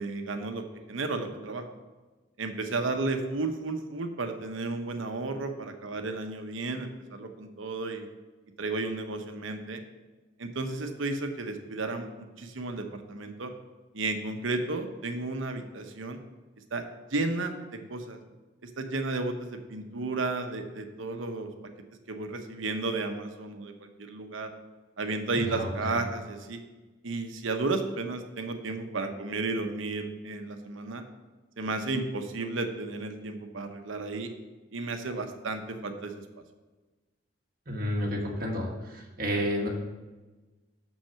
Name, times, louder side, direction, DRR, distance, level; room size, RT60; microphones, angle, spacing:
voice 1, 0.0-1.6 2.4-8.1 8.6-9.8 10.4-13.5 13.9-16.2 16.7-16.8 17.1-18.2 18.6-21.5 22.1-24.5 25.0-26.6 27.0-31.0 31.6-34.3 34.7-36.1, right 3 dB, 75° right, 6 dB, 0.9 m, -33 dB
voice 2, 25.4-26.0 37.7-39.7, equal, 45° right, -1 dB, 1.5 m, -31 dB
6.4 x 6.0 x 5.7 m, 1.2 s
head